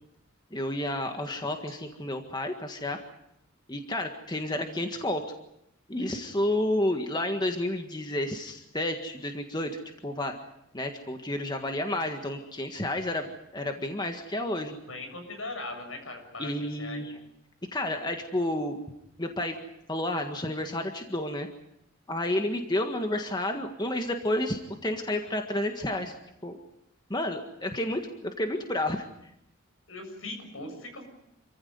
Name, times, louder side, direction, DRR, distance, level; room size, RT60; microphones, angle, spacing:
voice 1, 0.5-3.0 3.7-5.2 5.9-10.3 10.7-14.8 16.4-17.1 17.7-18.8 19.2-19.6 19.9-21.5 22.1-26.1 26.4-26.6 27.1-29.1, left 1 dB, 20° left, 5 dB, 1.7 m, -30 dB
voice 2, 14.9-16.5 16.8-17.0 29.9-31.0, left 2 dB, 80° left, 5 dB, 7.4 m, -39 dB
27.5 x 15.0 x 9.5 m, 0.80 s
head